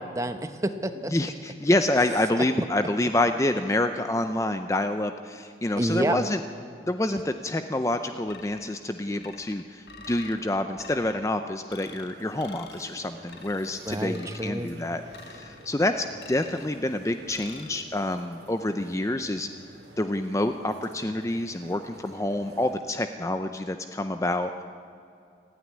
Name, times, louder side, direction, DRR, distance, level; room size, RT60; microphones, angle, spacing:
voice 1, 0.0-1.1 5.8-6.2 13.9-14.7, right 1 dB, 20° right, 9 dB, 0.9 m, -28 dB
voice 2, 1.1-6.4 6.8-15.0 15.3-19.5 20.0-24.6, left 1 dB, 15° left, 8 dB, 0.5 m, -27 dB
sound 1, 8.3-8.8 9.2-10.4 10.8-11.3 11.7-12.1 12.4-12.9 13.3-13.7 14.1-14.6 15.1-15.7 16.2-16.7 17.3-17.8, left 5 dB, 65° left, 1.3 m, -47 dB
sound 2, 11.8-22.8, right 1 dB, 75° right, 2.3 m, -50 dB
28.5 x 9.5 x 9.6 m, 2.5 s
head